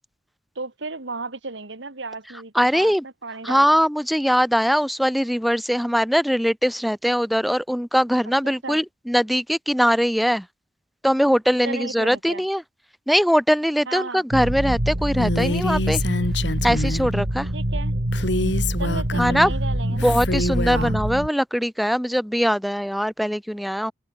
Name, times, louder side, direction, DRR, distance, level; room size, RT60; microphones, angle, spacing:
voice 1, 0.6-2.9 3.2-3.7 8.4-8.8 11.6-12.4 13.9-14.2 17.5-18.0 18.8-20.2 20.7-20.9, right 3 dB, 85° right, 2.2 m, -34 dB
voice 2, 2.5-3.0 3.4-10.5 11.0-12.6 13.1-16.0 16.6-17.5 19.2-19.5 19.9-23.9, equal, ahead, 1.0 m, -21 dB
sound 1, 14.3-21.3, right 1 dB, 65° right, 3.0 m, -25 dB
Female speech woman speaking, 15.2-17.1 18.1-19.5 20.0-21.0, left 2 dB, 75° left, 2.9 m, -26 dB
head